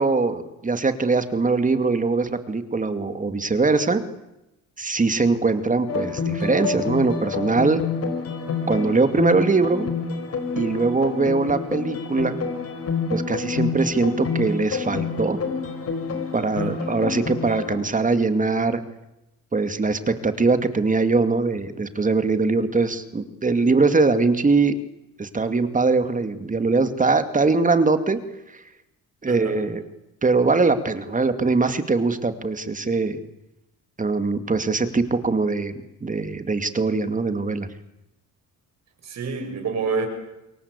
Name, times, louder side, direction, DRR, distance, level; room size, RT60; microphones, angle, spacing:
voice 1, 0.0-4.0 4.8-7.8 8.7-9.9 10.6-12.4 13.1-15.4 16.3-18.8 19.5-24.7 25.2-28.2 28.5-28.6 29.2-29.8 30.2-33.2 34.0-37.7, right 3 dB, 25° right, 9 dB, 2.5 m, -22 dB
sound 1, 5.9-17.8, left 5 dB, 55° left, 4.6 m, -28 dB
voice 2, 16.6-17.1 29.2-29.6 39.0-40.1, right 5 dB, 60° right, 5 dB, 7.2 m, -29 dB
28.0 x 22.5 x 8.4 m, 0.93 s
cardioid pair, 90°, 30 cm